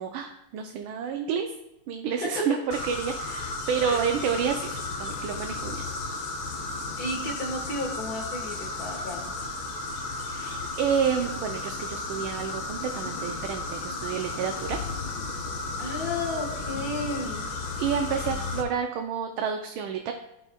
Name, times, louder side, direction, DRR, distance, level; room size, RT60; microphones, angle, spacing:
voice 1, 0.0-1.5 1.9-5.8 10.2-14.8 17.8-20.1, right 7 dB, 80° right, 4 dB, 1.4 m, -29 dB
sound 1, 2.7-18.6, left 3 dB, 75° left, 1.8 m, -34 dB
voice 2, 7.0-9.3 15.8-17.5, left 2 dB, 50° left, 0 dB, 1.8 m, -33 dB
15.0 x 5.4 x 2.3 m, 0.90 s
omnidirectional pair, 2.3 m